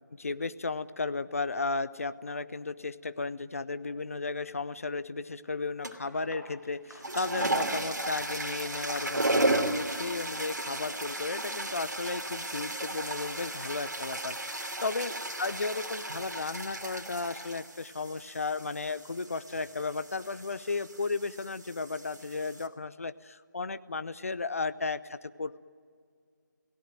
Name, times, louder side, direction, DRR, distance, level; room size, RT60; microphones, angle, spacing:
voice 1, 0.2-15.1 15.4-25.6, left 3 dB, 45° left, 15 dB, 0.8 m, -34 dB
sound 1, 5.8-6.2 6.8-22.7, right 1 dB, 60° right, 2.9 m, -34 dB
sound 2, 5.9-11.0, left 1 dB, 75° left, 6.1 m, -52 dB
30.0 x 17.5 x 9.2 m, 2.1 s
figure-of-eight pair, 155°, 10 cm